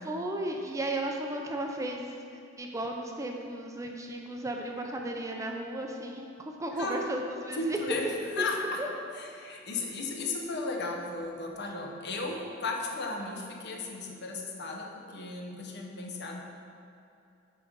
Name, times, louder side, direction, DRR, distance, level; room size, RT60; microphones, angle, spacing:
voice 1, 0.0-2.1 2.6-7.8 8.8-8.9, right 1 dB, 15° right, 2 dB, 0.5 m, -34 dB
voice 2, 7.5-8.1 8.4-8.8 9.1-16.4, left 3 dB, 55° left, 1 dB, 0.8 m, -35 dB
7.8 x 3.8 x 5.4 m, 2.6 s
head